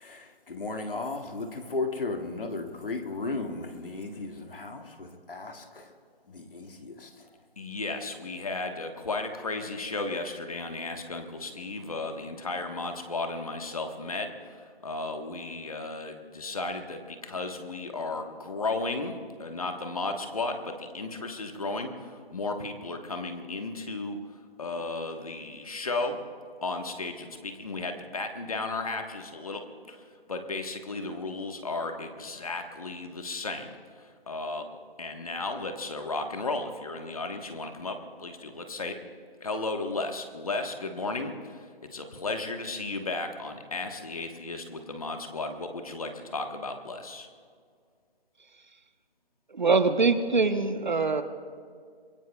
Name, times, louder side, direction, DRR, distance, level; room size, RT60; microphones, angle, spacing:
voice 1, 0.0-5.9 6.3-7.3, left 3 dB, 60° left, 3 dB, 2.1 m, -35 dB
voice 2, 7.6-24.2 24.6-26.2 26.6-33.7 34.0-34.7 35.0-39.0 39.4-47.3, left 3 dB, 35° left, 5 dB, 1.4 m, -34 dB
voice 3, 49.5-51.2, right 4 dB, 50° right, 9 dB, 1.0 m, -23 dB
27.0 x 22.5 x 2.3 m, 2.1 s
hypercardioid pair, 175°, 31 cm